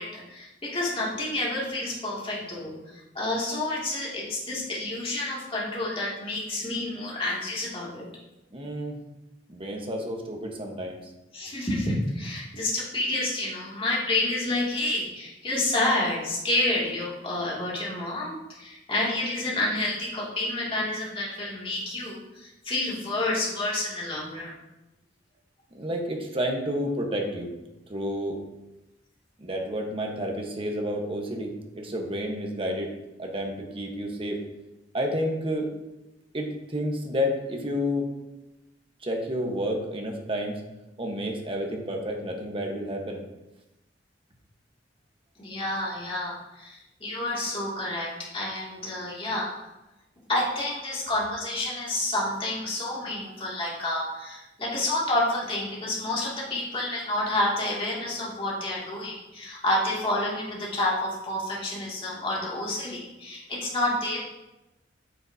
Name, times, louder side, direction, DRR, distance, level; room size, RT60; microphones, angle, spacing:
voice 1, 0.0-8.0 11.3-24.5 45.4-49.5 50.3-64.2, left 1 dB, 30° left, -5 dB, 2.3 m, -29 dB
voice 2, 8.5-9.0 9.5-11.1 25.7-27.5 27.9-28.4 29.4-32.9 33.2-34.4 34.9-35.7 36.3-38.1 39.0-40.6 41.0-43.2, equal, 30° right, 2 dB, 1.2 m, -30 dB
9.2 x 7.0 x 2.8 m, 0.98 s
head